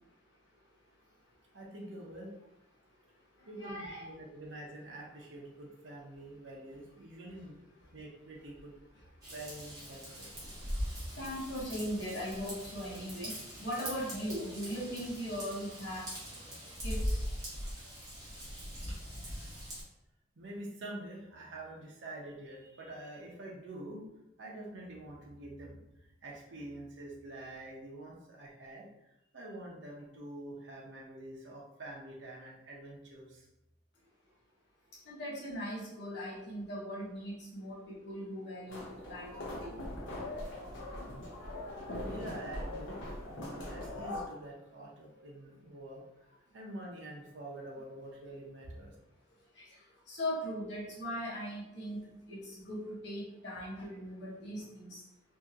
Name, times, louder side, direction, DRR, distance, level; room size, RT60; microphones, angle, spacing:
voice 1, 1.5-2.3 3.5-7.6 7.9-8.7 9.3-10.3 20.4-24.0 24.4-25.8 26.2-28.8 29.3-33.5 42.0-43.0 43.3-48.9, right 1 dB, 80° right, -2 dB, 0.7 m, -46 dB
voice 2, 3.6-4.1 11.2-13.3 13.6-16.4 16.8-17.2 35.1-39.9 49.6-49.7 50.1-52.0 52.3-55.0, equal, 70° left, -6 dB, 1.0 m, -39 dB
Raindrop / Vehicle horn car horn honking / Trickle dribble, 9.2-19.8, equal, 20° right, 0.9 m, -41 dB
sound 1, 38.7-44.3, left 1 dB, 90° left, 0.8 m, -41 dB
2.8 x 2.7 x 2.4 m, 0.88 s
head